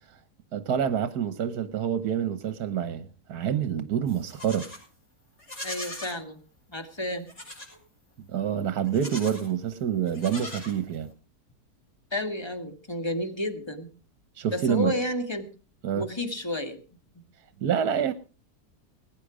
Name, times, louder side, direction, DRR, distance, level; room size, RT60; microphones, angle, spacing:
voice 1, 0.5-4.6 8.3-11.1 14.4-14.9 15.8-16.0 17.6-18.1, right 8 dB, 70° right, 1.5 m, -27 dB
Livestock farm animals working animals, 4.1-4.8 5.4-6.2 7.3-7.8 8.8-9.5 10.1-11.1, left 1 dB, 40° left, 8.0 m, -40 dB
voice 2, 5.6-6.4 6.7-7.2 12.1-13.9 14.5-15.5 15.9-16.8, left 1 dB, 15° left, 1.7 m, -31 dB
20.5 x 9.5 x 4.9 m
omnidirectional pair, 1.8 m